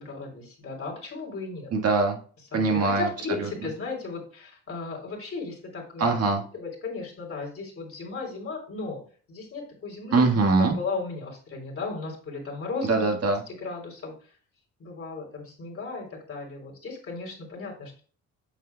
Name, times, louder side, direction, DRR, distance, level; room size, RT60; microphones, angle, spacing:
voice 1, 0.0-1.7 2.5-6.2 6.5-9.0 9.3-10.3 10.6-13.1 13.5-14.1 14.8-18.0, left 3 dB, 45° left, -1 dB, 3.6 m, -35 dB
voice 2, 1.7-2.2 2.5-3.1 6.0-6.4 10.1-10.7 12.9-13.4, right 3 dB, 55° right, 2 dB, 1.6 m, -22 dB
8.4 x 6.5 x 2.2 m, 0.42 s
cardioid pair, 90°, 30 cm